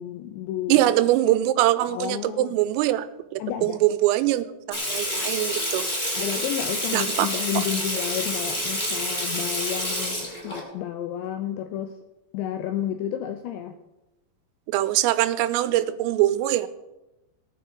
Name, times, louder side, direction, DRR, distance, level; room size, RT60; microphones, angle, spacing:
voice 1, 0.0-0.9 1.9-2.6 3.4-3.8 6.2-12.0 12.3-13.8, left 11 dB, 85° left, 8 dB, 2.6 m, -31 dB
voice 2, 0.7-3.1 3.3-6.2 6.9-7.3 14.7-16.7, right 14 dB, 90° right, 13 dB, 3.3 m, -23 dB
Water tap faucet / Sink (filling or washing), 4.7-10.6, equal, 20° left, 1.3 m, -28 dB
19.0 x 9.2 x 4.6 m, 0.99 s
omnidirectional pair, 5.8 m